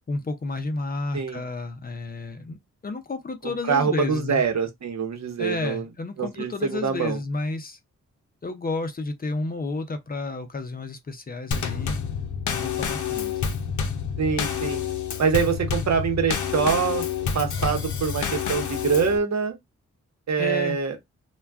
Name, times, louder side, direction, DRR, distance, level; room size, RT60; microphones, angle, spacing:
voice 1, 0.1-4.4 5.4-7.8 8.4-12.0 12.4-13.6 20.4-20.8, left 3 dB, 30° left, 0.5 m, -31 dB
voice 2, 3.7-5.8 6.2-7.2 14.2-14.8 15.2-17.0 17.3-19.6 20.3-21.0, right 6 dB, 65° right, 0.9 m, -24 dB
Drum kit / Snare drum / Bass drum, 11.5-19.2, left 7 dB, 85° left, 0.6 m, -28 dB
2.3 x 2.2 x 3.4 m
wide cardioid pair, 90°, 29 cm